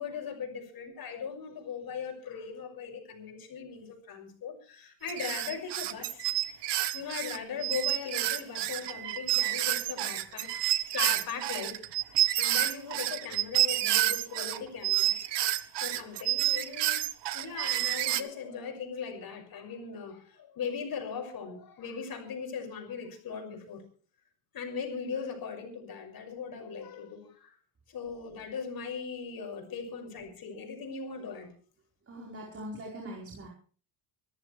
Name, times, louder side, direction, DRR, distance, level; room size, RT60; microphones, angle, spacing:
voice 1, 0.0-6.3 6.9-10.5 10.9-11.8 12.4-15.1 15.8-17.0 17.3-23.8 24.5-27.5 27.9-31.5, left 6 dB, 45° left, 3 dB, 6.2 m, -39 dB
sound 1, 5.1-14.6 14.8-18.2, right 14 dB, 60° right, 1.2 m, -29 dB
voice 2, 32.0-33.5, equal, 30° right, -2 dB, 4.7 m, -42 dB
25.5 x 14.0 x 3.4 m, 0.41 s
cardioid pair, 130°, 48 cm